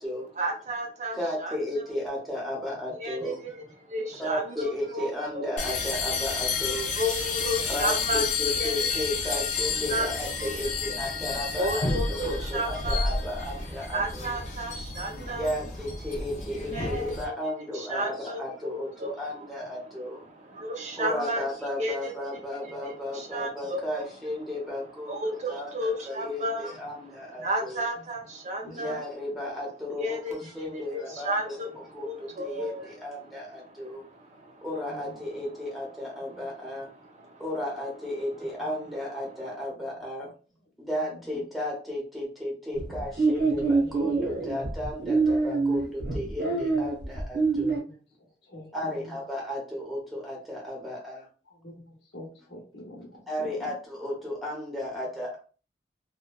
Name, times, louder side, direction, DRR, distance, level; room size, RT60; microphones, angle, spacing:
voice 1, 0.4-1.6 3.0-5.1 5.3-5.5 6.9-8.9 9.9-10.5 11.5-13.1 13.9-15.5 16.7-17.3 17.7-19.1 20.2-21.5 21.8-22.1 22.6-24.0 24.5-24.6 25.0-29.0 29.9-33.1 33.6-34.7 37.0-37.4, right 1 dB, 40° right, 1 dB, 0.5 m, -33 dB
voice 2, 1.1-3.4 4.2-6.9 7.6-14.4 15.3-20.2 21.0-27.8 28.7-31.7 31.9-34.1 34.6-36.9 37.4-40.3 40.8-47.8 48.7-51.3 53.3-55.4, left 1 dB, ahead, -3 dB, 0.8 m, -34 dB
sound 1, 5.6-17.2, left 4 dB, 40° left, 0.5 m, -30 dB
voice 3, 34.9-35.3 41.1-41.2 43.8-44.0 47.9-48.0 48.5-49.2 51.6-53.5, left 1 dB, 75° left, 0 dB, 0.8 m, -45 dB
sound 2, 42.8-47.8, right 3 dB, 65° right, 0.8 m, -25 dB
2.8 x 2.1 x 2.2 m, 0.37 s
head